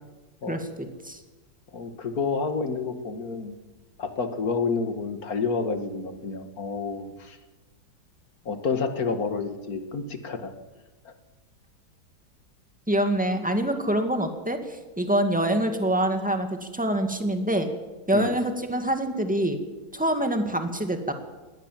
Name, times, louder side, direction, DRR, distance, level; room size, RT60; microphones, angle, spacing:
voice 1, 0.5-1.2 12.9-17.7 18.1-19.6 19.9-21.1, right 1 dB, 5° right, 6 dB, 2.0 m, -25 dB
voice 2, 1.7-3.6 4.0-7.4 8.5-10.5 11.1-11.2 18.1-18.4, left 4 dB, 50° left, 8 dB, 2.1 m, -29 dB
20.5 x 18.0 x 7.5 m, 1.2 s
omnidirectional pair, 2.0 m